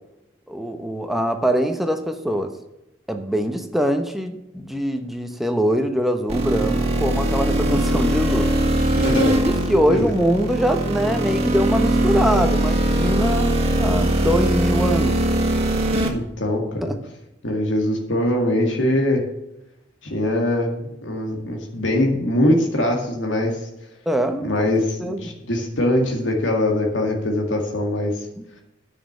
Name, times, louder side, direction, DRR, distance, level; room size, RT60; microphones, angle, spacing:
voice 1, 0.5-2.5 3.1-8.5 9.4-15.2 16.8-17.0 24.1-24.7 25.0-25.3, equal, ahead, 6 dB, 0.9 m, -23 dB
sound 1, 6.3-16.1, right 1 dB, 35° right, 1.9 m, -21 dB
voice 2, 8.9-9.4 9.7-10.1 16.1-16.9 17.4-19.2 20.0-23.6 24.4-28.3, left 1 dB, 85° left, 1 dB, 2.0 m, -22 dB
9.8 x 6.4 x 7.2 m, 0.89 s
head